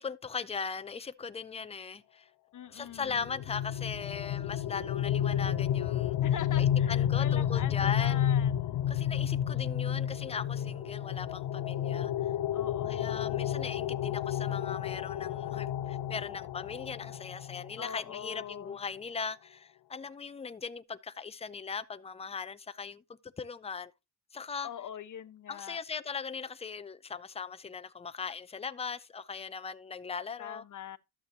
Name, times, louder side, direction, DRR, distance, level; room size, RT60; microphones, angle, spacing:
voice 1, 0.0-2.3 2.7-6.1 6.6-8.2 8.9-12.3 12.9-23.0 23.4-23.9 24.3-24.7 25.5-30.6, left 5 dB, 15° left, 0.5 m, -39 dB
voice 2, 2.5-3.3 6.2-8.8 12.5-13.4 17.8-18.8 24.6-25.8 30.4-31.0, left 9 dB, 50° left, 1.1 m, -43 dB
sound 1, 3.0-17.8, left 10 dB, 90° left, 0.6 m, -31 dB
12.0 x 7.9 x 2.8 m
cardioid pair, 130°, 38 cm